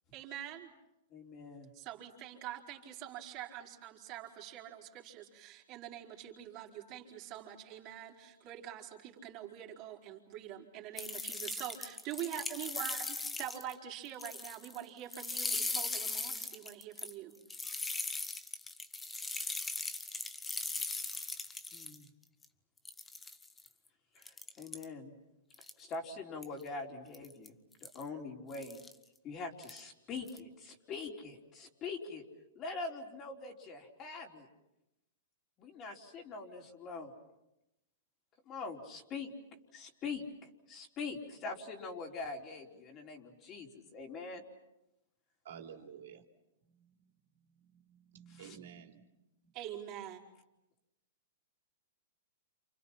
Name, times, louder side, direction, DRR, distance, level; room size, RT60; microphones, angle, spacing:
voice 1, 0.1-0.7 1.7-13.1 13.4-17.4 49.5-50.2, right 11 dB, 40° right, 1 dB, 4.4 m, -45 dB
voice 2, 1.1-1.7 21.7-22.1 24.1-25.1 25.8-27.5 27.8-28.8 29.2-32.2 32.5-34.5 35.6-37.1 38.5-39.3 39.7-44.4 48.3-48.6, left 4 dB, 30° left, 1 dB, 4.4 m, -43 dB
sound 1, 11.0-13.7 14.0-14.8 15.1-22.0 22.4-22.5 22.8-23.7 24.2-24.8 25.5-25.9 26.4-26.6 27.1-27.5 27.8-28.0 28.5-28.9 29.6-29.8 30.2-30.4, left 3 dB, 10° left, 1.3 m, -39 dB
voice 3, 45.4-46.2 48.1-49.0, right 8 dB, 75° right, 3 dB, 3.3 m, -50 dB
29.5 x 28.5 x 5.9 m, 0.89 s
hypercardioid pair, 125°, 0 cm